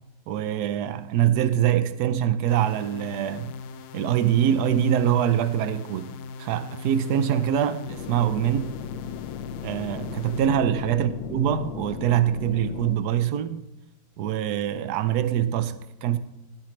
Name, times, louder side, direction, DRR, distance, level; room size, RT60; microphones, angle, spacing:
voice 1, 0.3-3.5 3.9-8.7 9.6-13.6 14.2-16.2, right 10 dB, 65° right, 1.1 m, -24 dB
sound 1, 2.5-10.5, left 5 dB, 70° left, 1.1 m, -41 dB
sound 2, 7.9-12.9, left 9 dB, 90° left, 1.4 m, -37 dB
13.5 x 13.0 x 3.2 m
omnidirectional pair, 2.1 m